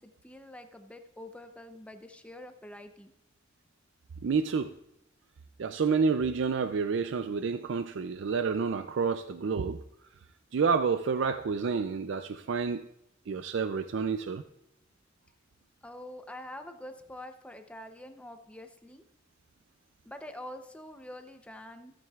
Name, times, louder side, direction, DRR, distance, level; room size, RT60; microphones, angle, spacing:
voice 1, 0.0-3.1 15.8-19.0 20.0-21.9, left 1 dB, 5° left, 7 dB, 0.6 m, -46 dB
voice 2, 4.2-4.7 5.6-9.8 10.5-12.9 13.3-14.4, right 5 dB, 65° right, 9 dB, 0.4 m, -29 dB
14.0 x 8.9 x 2.4 m, 0.82 s
head